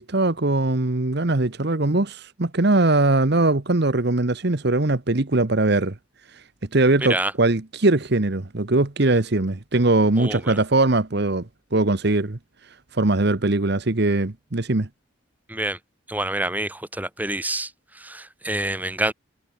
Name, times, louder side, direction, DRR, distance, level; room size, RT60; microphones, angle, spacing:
voice 1, 0.0-6.0 6.3-6.4 6.7-11.5 11.7-12.4 12.9-14.9, right 2 dB, 50° right, 1.1 m, -21 dB
voice 2, 10.2-10.6 15.5-15.8 16.1-19.1, right 1 dB, 10° right, 2.9 m, -27 dB
head